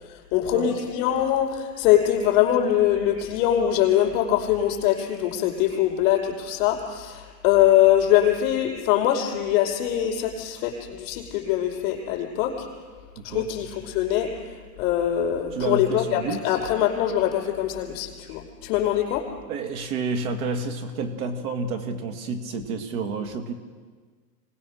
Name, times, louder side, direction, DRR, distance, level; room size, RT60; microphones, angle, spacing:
voice 1, 0.0-12.7 13.2-14.3 14.8-19.2, left 11 dB, 45° left, 2 dB, 5.2 m, -23 dB
voice 2, 13.2-13.5 15.6-16.6 19.5-23.5, right 4 dB, 55° right, 6 dB, 2.4 m, -30 dB
26.0 x 19.0 x 6.6 m, 1.5 s
hypercardioid pair, 135°, 49 cm